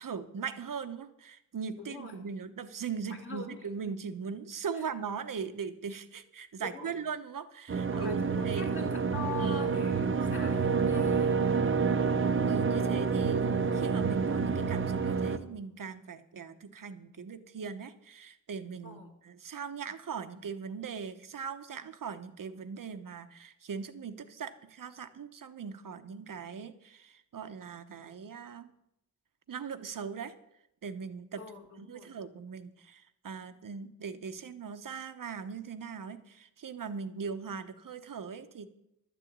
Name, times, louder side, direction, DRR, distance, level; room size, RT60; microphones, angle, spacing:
voice 1, 0.0-8.9 9.4-10.4 12.1-28.7 29.5-30.3 30.8-31.4 31.8-38.7, right 6 dB, 65° right, 10 dB, 0.9 m, -40 dB
voice 2, 1.8-2.2 3.1-3.6 4.7-4.9 6.6-7.0 7.9-11.3 12.8-13.0 18.8-19.1 31.4-32.1, left 4 dB, 35° left, 0 dB, 2.1 m, -43 dB
sound 1, 7.7-15.4, right 5 dB, 35° right, 0.7 m, -28 dB
12.0 x 6.9 x 8.6 m, 0.82 s
wide cardioid pair, 145°, 35 cm